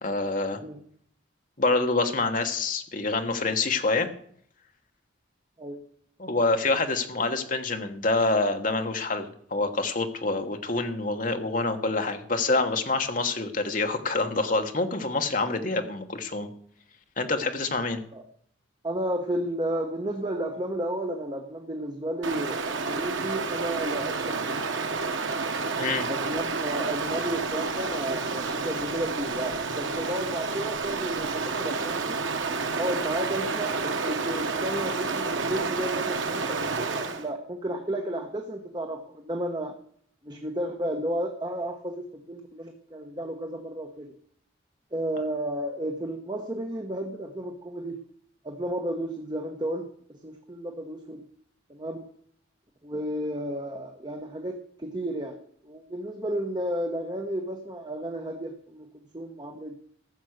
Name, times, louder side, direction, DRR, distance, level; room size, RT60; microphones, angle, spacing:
voice 1, 0.0-0.6 1.6-4.1 6.2-16.5 17.2-18.0 25.8-26.1, left 3 dB, 40° left, 6 dB, 1.3 m, -26 dB
voice 2, 18.8-24.6 26.1-32.2 32.8-39.7 40.2-44.1 44.9-48.0 48.4-51.2 51.7-52.0 52.8-55.4 55.6-59.8, right 1 dB, 20° right, 4 dB, 1.0 m, -32 dB
Stream, 22.2-37.3, right 4 dB, 80° right, 1.2 m, -30 dB
14.0 x 7.1 x 6.5 m, 0.63 s
head